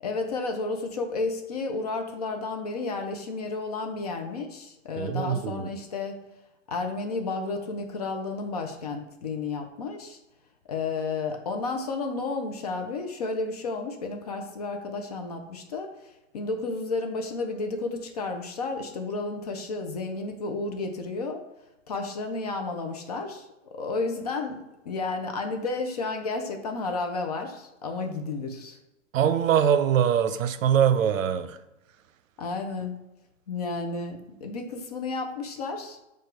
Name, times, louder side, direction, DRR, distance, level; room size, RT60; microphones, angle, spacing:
voice 1, 0.0-6.2 6.7-10.2 10.7-15.9 16.3-21.4 21.9-24.6 24.8-28.8 32.4-33.0 33.5-36.0, left 3 dB, 30° left, 0.4 m, -32 dB
voice 2, 4.9-5.7 29.1-31.6, right 8 dB, 85° right, 0.6 m, -23 dB
4.8 x 2.4 x 4.6 m
hypercardioid pair, 160°, 39 cm